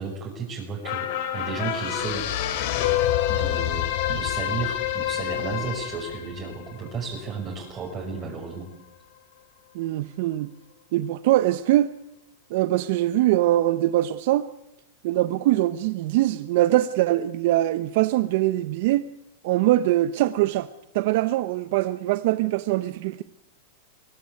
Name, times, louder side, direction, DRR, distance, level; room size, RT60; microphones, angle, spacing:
voice 1, 0.0-2.3 3.3-8.7, right 5 dB, 30° right, -3 dB, 6.3 m, -33 dB
sound 1, 0.8-7.5 7.9-8.0, left 12 dB, 60° left, 3.1 m, -27 dB
voice 2, 9.7-10.5 10.9-11.9 12.5-14.5 15.0-19.0 19.4-20.7 20.9-23.2, right 15 dB, 60° right, 12 dB, 1.0 m, -22 dB
23.0 x 17.5 x 9.7 m, 0.86 s
supercardioid pair, 135°, 0 cm